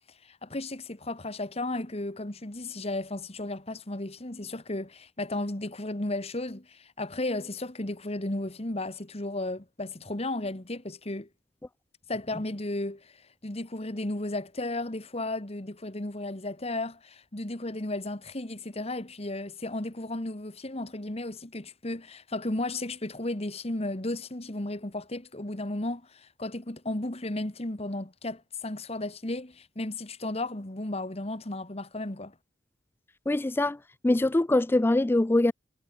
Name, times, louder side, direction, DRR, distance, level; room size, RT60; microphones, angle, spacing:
voice 1, 0.2-11.3 12.1-13.1 13.4-32.3, left 2 dB, 35° left, 1.8 m, -34 dB
voice 2, 33.3-33.8 34.0-35.5, left 2 dB, 10° left, 0.3 m, -23 dB
head